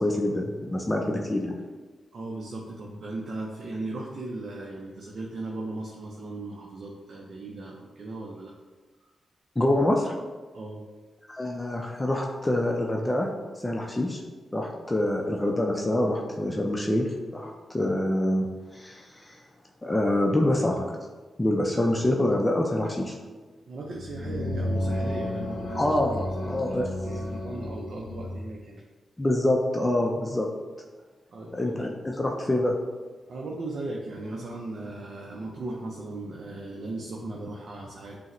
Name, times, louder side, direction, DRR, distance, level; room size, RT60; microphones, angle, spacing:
voice 1, 0.0-1.6 9.6-10.1 11.3-13.3 13.6-14.2 14.5-18.5 18.7-19.4 19.8-20.9 21.4-23.2 25.7-26.9 29.2-30.5 31.5-32.8, left 1 dB, 25° left, 1 dB, 0.5 m, -26 dB
voice 2, 2.1-8.5 10.5-10.8 23.7-26.0 26.2-28.9 31.3-32.0 33.3-38.2, right 2 dB, 65° right, -1 dB, 0.5 m, -37 dB
sound 1, 23.9-28.5, left 1 dB, 80° left, 0.5 m, -32 dB
5.4 x 2.1 x 3.0 m, 1.3 s
supercardioid pair, 40°, 0 cm